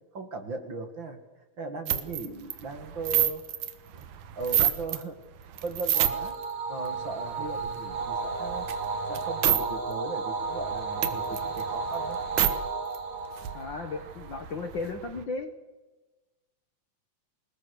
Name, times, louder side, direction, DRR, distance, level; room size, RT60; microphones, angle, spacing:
voice 1, 0.1-1.2 1.6-3.4 3.9-4.1 4.4-5.2 5.6-6.3 6.7-8.7 9.1-12.2, right 3 dB, 45° right, 7 dB, 2.4 m, -37 dB
sound 1, 1.9-5.0 5.4-6.4 6.9-9.6 9.9-10.0 10.3-12.5 13.0-13.1 13.2-15.2, right 11 dB, 90° right, 2.8 m, -30 dB
sound 2, 5.9-14.5, right 4 dB, 70° right, 3.7 m, -33 dB
voice 2, 13.5-15.5, left 3 dB, 50° left, 7 dB, 1.6 m, -35 dB
27.5 x 19.5 x 6.6 m, 1.2 s
omnidirectional pair, 3.4 m